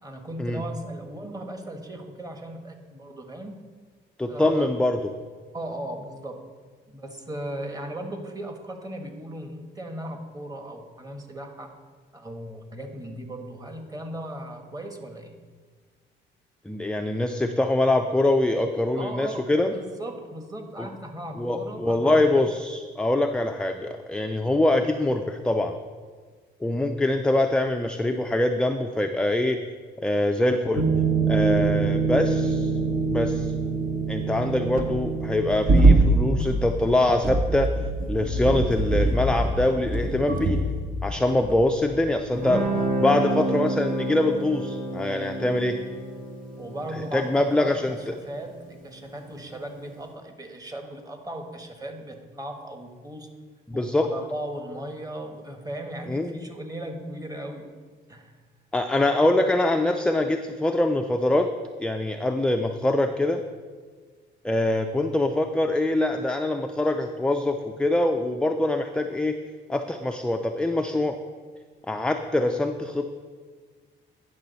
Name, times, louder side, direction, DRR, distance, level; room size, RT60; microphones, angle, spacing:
voice 1, 0.0-3.6 4.3-4.7 5.5-6.4 6.9-11.7 12.1-15.4 19.0-22.4 43.1-43.3 46.6-53.3 53.7-57.7 58.1-58.3, right 1 dB, 20° right, 4 dB, 1.2 m, -37 dB
voice 2, 4.2-5.0 16.7-19.7 20.8-20.9 21.4-25.7 26.6-29.6 30.0-30.8 31.3-32.7 33.1-33.5 34.1-37.7 38.1-40.6 41.0-42.7 43.0-45.8 47.1-48.0 53.7-54.0 56.1-56.3 58.7-61.5 61.8-63.4 64.4-69.3 69.7-71.2 71.9-73.2, left 1 dB, 5° left, 5 dB, 0.4 m, -24 dB
sound 1, 30.8-42.3 42.6-42.8, right 3 dB, 45° right, 1.0 m, -24 dB
Guitar, 42.3-49.5, right 2 dB, 80° right, 2.2 m, -30 dB
9.7 x 6.1 x 4.1 m, 1.5 s
cardioid pair, 90°, 20 cm